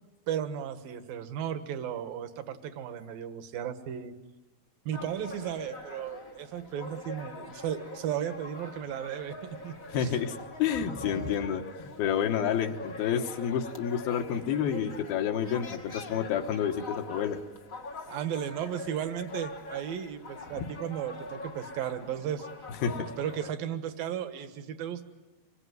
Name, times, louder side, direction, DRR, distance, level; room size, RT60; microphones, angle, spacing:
voice 1, 0.3-4.1 4.9-9.4 9.6-9.7 10.0-10.2 18.1-22.5 23.2-25.0, right 9 dB, 70° right, 9 dB, 3.1 m, -35 dB
sound 1, 4.9-23.5, left 2 dB, 45° left, 1.0 m, -44 dB
voice 2, 9.9-17.4 20.6-20.7 22.8-23.1, left 8 dB, 75° left, 4 dB, 3.1 m, -29 dB
27.0 x 23.0 x 9.4 m, 1.1 s
omnidirectional pair, 4.4 m